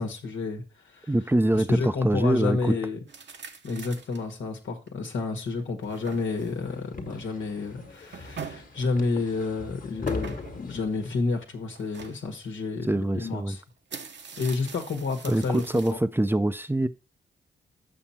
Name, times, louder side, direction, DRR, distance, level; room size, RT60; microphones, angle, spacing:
voice 1, 0.0-1.1 1.5-3.0 3.6-13.6 14.4-15.6 15.9-16.0, left 3 dB, 85° left, 1.4 m, -30 dB
voice 2, 1.1-2.7 12.9-13.6 15.3-16.9, right 1 dB, 10° right, 0.5 m, -24 dB
sound 1, 3.1-4.3 4.9-5.0 5.5-6.6 7.8-8.8 10.1-10.7 11.7-12.2 13.3-13.4 13.7-15.9, right 6 dB, 65° right, 1.0 m, -43 dB
sound 2, 6.0-11.1, left 3 dB, 45° left, 1.5 m, -39 dB
7.3 x 5.9 x 4.2 m
cardioid pair, 70°, 20 cm